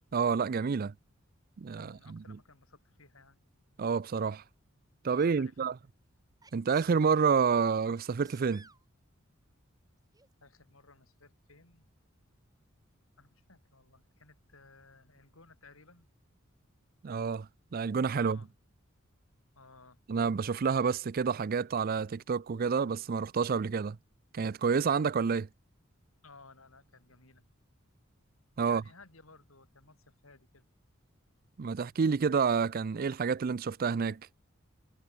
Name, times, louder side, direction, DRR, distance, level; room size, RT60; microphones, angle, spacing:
voice 1, 0.1-0.9 1.6-2.4 3.8-4.4 5.0-5.7 6.5-8.6 17.0-18.4 20.1-24.0 24.3-25.5 28.6-28.8 31.6-34.2, right 5 dB, 45° right, 0.4 m, -29 dB
voice 2, 1.7-3.4 5.1-5.7 10.4-11.9 13.2-16.1 18.2-18.5 19.6-20.0 26.2-27.5 28.6-30.7, left 3 dB, 85° left, 5.3 m, -58 dB
Sneeze, 5.1-5.4 6.4-7.3 7.9-8.8 10.1-10.3, right 4 dB, 20° right, 3.9 m, -58 dB
head